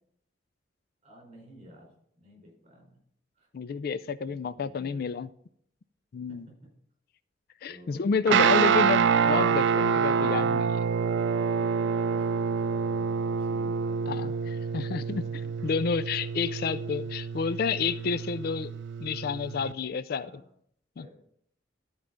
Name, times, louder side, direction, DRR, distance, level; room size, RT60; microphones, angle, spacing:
voice 1, 1.0-3.0 3.4-3.5 4.3-5.0 6.3-6.6 7.7-8.8 11.3-14.6 20.1-20.4 20.9-21.2, equal, 35° right, 0 dB, 4.6 m, -50 dB
voice 2, 3.5-5.3 6.1-6.5 7.6-10.8 14.1-14.3 14.7-15.2 15.6-18.7 19.0-20.4 21.0-21.1, left 5 dB, 55° left, 15 dB, 0.4 m, -30 dB
Guitar, 8.3-19.7, right 6 dB, 75° right, 0.4 m, -27 dB
12.5 x 4.8 x 6.2 m, 0.67 s
head